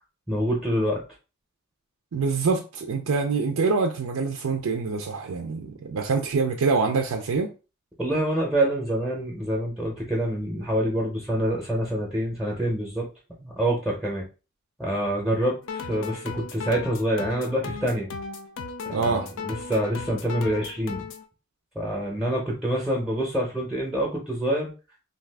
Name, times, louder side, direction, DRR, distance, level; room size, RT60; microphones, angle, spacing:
voice 1, 0.3-1.0 8.0-13.1 13.4-14.2 14.8-18.1 18.9-21.1 21.7-24.7, right 1 dB, ahead, 0.6 m, -26 dB
voice 2, 2.1-7.5 18.9-19.3, right 4 dB, 90° right, 0.4 m, -25 dB
sound 1, 15.6-21.2, left 5 dB, 65° left, 0.4 m, -36 dB
2.6 x 2.4 x 3.3 m
head